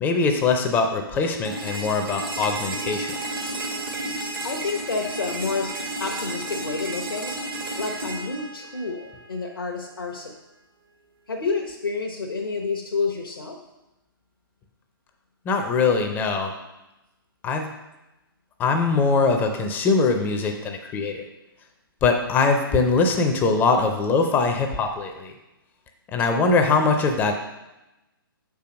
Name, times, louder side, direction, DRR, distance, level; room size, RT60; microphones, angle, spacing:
voice 1, 0.0-3.1 15.5-16.5 17.4-17.7 18.6-21.2 22.0-25.3 26.1-27.3, left 4 dB, 15° left, 5 dB, 0.6 m, -22 dB
sound 1, 1.4-9.4, right 2 dB, 70° right, 1.5 m, -32 dB
voice 2, 4.4-5.7 6.0-7.3 7.8-10.3 11.3-13.6, left 4 dB, 70° left, 0 dB, 0.9 m, -29 dB
6.7 x 4.8 x 5.2 m, 0.98 s
figure-of-eight pair, 125°, 12 cm